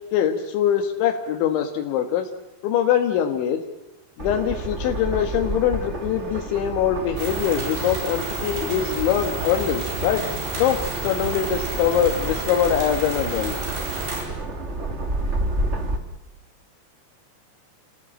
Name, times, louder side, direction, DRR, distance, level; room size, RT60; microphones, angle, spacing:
voice 1, 0.1-2.3 2.6-3.6 4.2-10.3 10.6-13.6, left 9 dB, 85° left, 4 dB, 3.9 m, -23 dB
sound 1, 4.2-16.0, right 1 dB, 40° right, 0.9 m, -30 dB
sound 2, 7.2-14.2, right 3 dB, 70° right, 7.4 m, -31 dB
29.5 x 18.0 x 8.8 m, 0.98 s
omnidirectional pair, 5.2 m